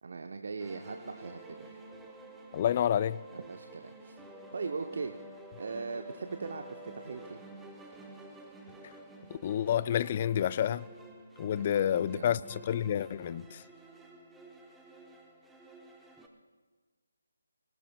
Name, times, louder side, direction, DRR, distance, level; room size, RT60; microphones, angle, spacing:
voice 1, 0.0-1.8 3.3-4.2 4.5-5.2 5.6-7.4 11.5-12.5, right 4 dB, 50° right, 0.7 m, -40 dB
sound 1, 0.6-16.3, right 2 dB, 5° right, 0.9 m, -50 dB
voice 2, 2.5-3.2 9.4-10.9 11.4-13.6, left 10 dB, 30° left, 0.3 m, -29 dB
19.5 x 18.5 x 2.2 m
figure-of-eight pair, 150°, 0 cm